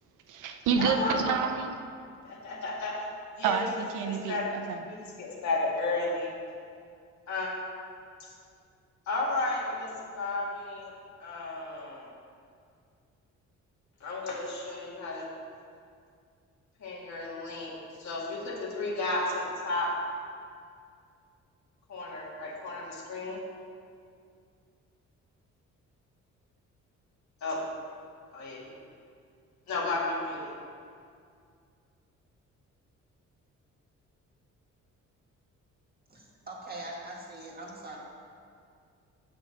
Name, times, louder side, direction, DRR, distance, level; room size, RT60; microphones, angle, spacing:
voice 1, 0.3-1.7 3.4-4.8, right 6 dB, 85° right, 5 dB, 0.8 m, -29 dB
voice 2, 0.8-1.5 2.2-3.1 3.4-3.6 4.0-4.5 4.8-6.3 7.3-7.5 8.2-8.3 9.1-10.9 11.2-12.1 14.0-15.3 16.8-19.9 21.9-23.4 27.4-27.6 28.3-28.7 29.7-30.5, left 2 dB, 65° left, -3 dB, 2.0 m, -33 dB
voice 3, 36.1-38.0, right 2 dB, 30° right, -3 dB, 2.1 m, -42 dB
7.1 x 6.3 x 5.9 m, 2.3 s
cardioid pair, 90°, 30 cm